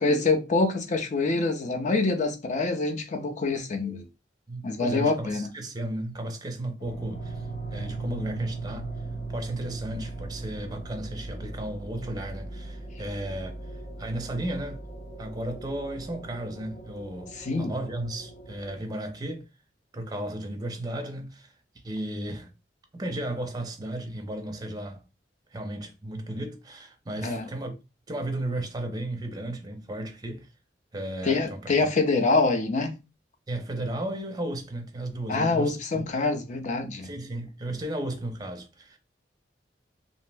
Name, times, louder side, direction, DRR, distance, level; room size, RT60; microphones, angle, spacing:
voice 1, 0.0-4.0 4.6-5.5 17.4-17.7 27.2-27.4 31.2-32.9 35.3-37.1, left 3 dB, 45° left, 0.5 m, -25 dB
voice 2, 4.5-7.5 7.7-8.9 9.3-13.6 14.0-14.8 15.2-19.5 19.9-21.5 21.8-22.5 22.9-25.0 25.5-27.7 28.1-30.5 30.9-31.6 33.5-36.1 37.0-39.0, right 1 dB, 20° right, 0.5 m, -34 dB
sound 1, 6.8-18.8, right 3 dB, 65° left, 0.9 m, -39 dB
2.6 x 2.0 x 3.3 m
head